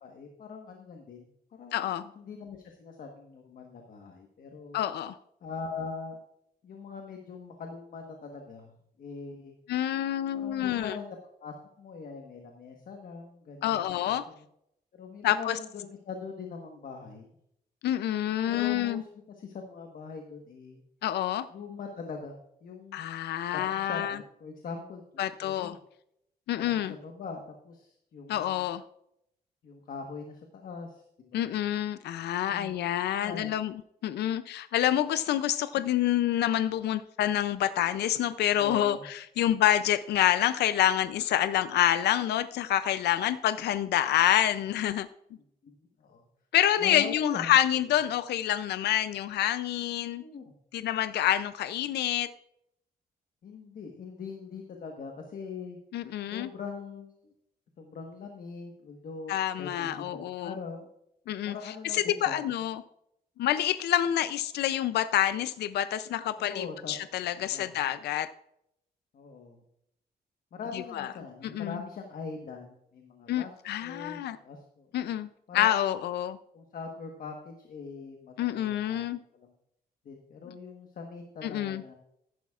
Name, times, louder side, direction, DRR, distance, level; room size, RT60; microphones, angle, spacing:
voice 1, 0.0-1.3 1.6-4.8 5.4-6.2 6.6-8.7 9.0-9.5 10.3-14.4 14.9-17.3 18.5-19.1 19.4-20.8 21.5-22.3 22.6-23.0 23.5-25.8 26.5-28.7 29.6-31.5 32.4-32.8 33.1-33.6 38.6-39.1 45.6-46.2 46.8-47.6 50.1-50.5 53.4-55.8 56.3-57.3 57.8-60.0 60.4-60.9 61.5-62.5 66.4-67.0 67.4-67.8 69.1-69.6 70.5-73.5 73.8-75.1 75.5-76.0 76.5-79.0 79.3-79.5 80.0-81.9, left 5 dB, 55° left, 3 dB, 1.3 m, -42 dB
voice 2, 1.7-2.1 4.7-5.2 9.7-11.0 13.6-14.2 15.2-15.6 17.8-19.0 21.0-21.5 22.9-24.2 25.2-25.8 26.5-26.9 28.3-28.8 31.3-33.7 34.0-45.1 46.5-50.2 50.7-52.3 55.9-56.5 59.3-60.5 61.3-61.5 61.9-62.8 63.4-68.3 70.7-71.1 71.5-71.8 73.3-74.4 74.9-75.3 75.5-76.4 78.4-79.2 81.4-81.8, left 12 dB, 80° left, 13 dB, 0.4 m, -27 dB
14.5 x 11.5 x 2.4 m, 0.76 s
cardioid pair, 140°, 17 cm